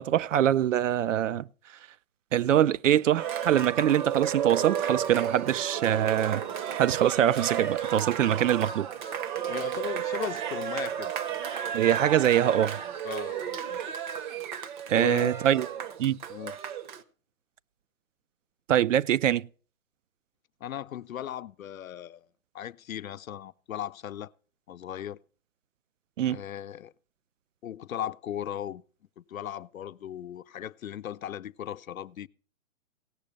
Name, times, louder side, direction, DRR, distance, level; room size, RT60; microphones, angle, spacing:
voice 1, 0.0-1.5 2.3-6.4 6.7-8.9 11.7-12.8 14.9-15.7 16.0-16.2 18.7-19.5 26.2-26.4, right 11 dB, 65° right, 0.5 m, -24 dB
Cheering, 3.2-17.0, right 9 dB, 35° right, 0.8 m, -33 dB
voice 2, 9.4-11.1 13.0-13.8 14.9-15.4 16.3-16.6 20.6-22.3 22.5-24.3 24.7-25.2 26.3-26.9 27.6-28.8 29.2-32.3, left 10 dB, 80° left, 0.6 m, -37 dB
17.0 x 6.6 x 5.2 m
hypercardioid pair, 135°, 41 cm